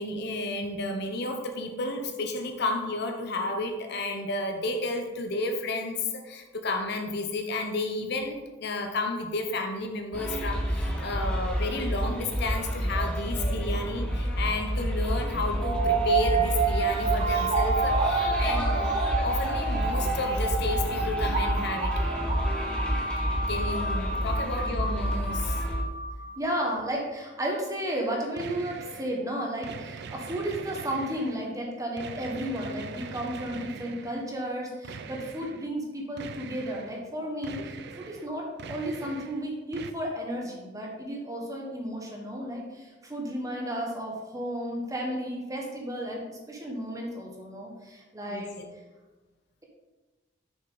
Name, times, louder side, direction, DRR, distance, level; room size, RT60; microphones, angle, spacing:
voice 1, 0.0-22.1 22.4-22.7 23.5-25.6 48.3-48.7, left 2 dB, 60° left, 4 dB, 0.8 m, -32 dB
sound 1, 10.1-25.8, equal, 5° left, 1.1 m, -29 dB
sound 2, 15.6-26.6, right 4 dB, 35° right, 0.8 m, -29 dB
voice 2, 26.4-48.5, right 1 dB, 20° right, -1 dB, 1.3 m, -33 dB
sound 3, 28.4-29.2 29.6-31.5 32.0-34.3 34.8-35.7 36.2-37.0 37.4-38.3 38.6-39.4 39.7-39.9, right 5 dB, 60° right, 0.4 m, -42 dB
6.4 x 5.7 x 3.9 m, 1.2 s
head